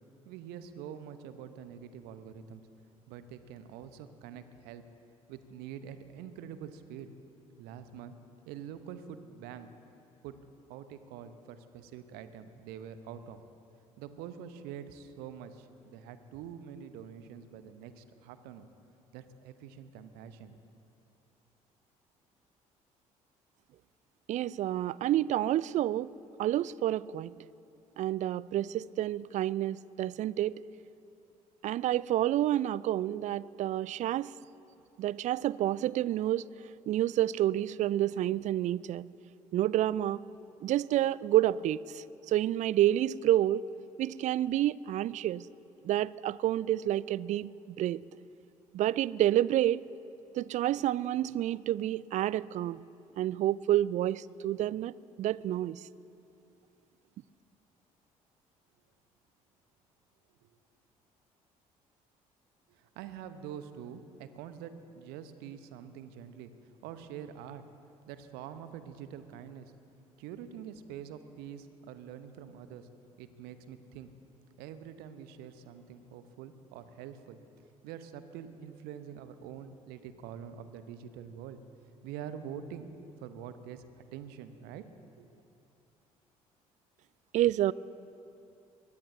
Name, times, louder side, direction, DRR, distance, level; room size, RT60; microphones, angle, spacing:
voice 1, 0.2-2.6 3.1-4.8 5.3-7.1 7.6-8.1 8.5-9.7 10.2-10.4 10.7-13.4 14.0-18.7 19.1-20.6 60.4-60.5 62.7-66.5 66.8-67.6 68.1-69.7 70.2-72.9 73.2-74.1 74.6-77.4 77.8-81.6 82.0-82.9 83.2-84.9 85.2-85.3, right 8 dB, 60° right, 11 dB, 1.0 m, -45 dB
voice 2, 24.3-27.3 28.0-30.6 31.6-34.3 35.0-36.5 36.9-39.1 39.5-40.2 40.6-43.6 44.0-45.5 45.8-48.0 48.7-49.8 50.3-52.8 53.2-55.8 87.3-87.7, right 13 dB, 40° right, 21 dB, 0.4 m, -29 dB
22.0 x 21.5 x 2.8 m, 2.7 s
figure-of-eight pair, 50°, 18 cm